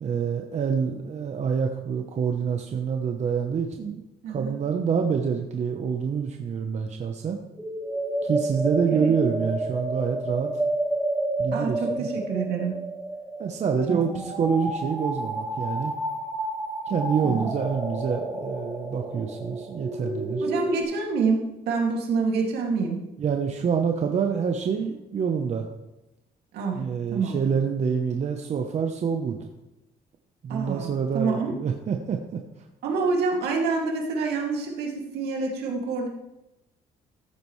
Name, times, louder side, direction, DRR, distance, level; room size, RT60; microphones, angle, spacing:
voice 1, 0.0-4.0 4.3-7.4 8.2-10.5 11.4-12.1 13.4-15.9 16.9-20.4 23.2-25.7 26.8-29.4 30.4-32.4, right 6 dB, 40° right, 4 dB, 0.9 m, -27 dB
voice 2, 4.2-4.6 8.9-9.0 11.5-12.8 13.9-14.2 17.2-17.5 20.4-23.0 26.5-26.8 27.1-27.4 30.5-31.5 32.8-36.1, right 4 dB, 75° right, 0 dB, 2.4 m, -27 dB
sound 1, 7.5-20.8, right 1 dB, 5° right, 2.8 m, -30 dB
14.0 x 8.7 x 3.2 m, 0.95 s
cardioid pair, 110°, 17 cm